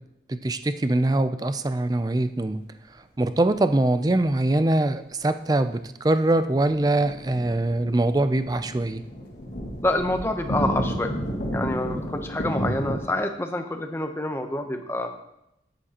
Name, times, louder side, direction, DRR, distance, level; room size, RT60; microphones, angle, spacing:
voice 1, 0.3-2.6 3.2-9.0, right 2 dB, 20° right, 11 dB, 0.4 m, -23 dB
sound 1, 6.4-13.1, equal, 70° left, 2.0 m, -32 dB
voice 2, 9.8-11.2 11.5-15.1, left 1 dB, 15° left, 5 dB, 0.8 m, -27 dB
13.0 x 9.7 x 2.9 m, 0.84 s
head